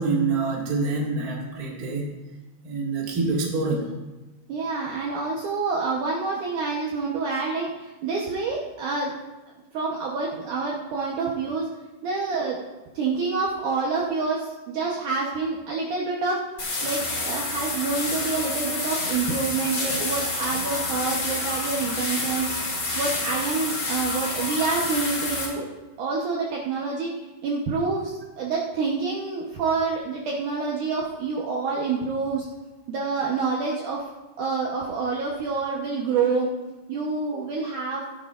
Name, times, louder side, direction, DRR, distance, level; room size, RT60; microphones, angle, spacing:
voice 1, 0.0-2.1 2.6-3.9, right 3 dB, 35° right, -3 dB, 1.4 m, -26 dB
voice 2, 4.5-9.1 9.7-11.7 12.0-12.6 12.9-16.4 16.8-22.5 23.0-25.7 26.0-27.1 27.4-32.4 32.9-34.0 34.4-36.5 36.9-38.1, right 4 dB, 85° right, -3 dB, 1.7 m, -27 dB
sound 1, 16.6-25.5, left 2 dB, 35° left, 3.4 m, -28 dB
16.5 x 11.0 x 2.5 m, 1.1 s
omnidirectional pair, 5.3 m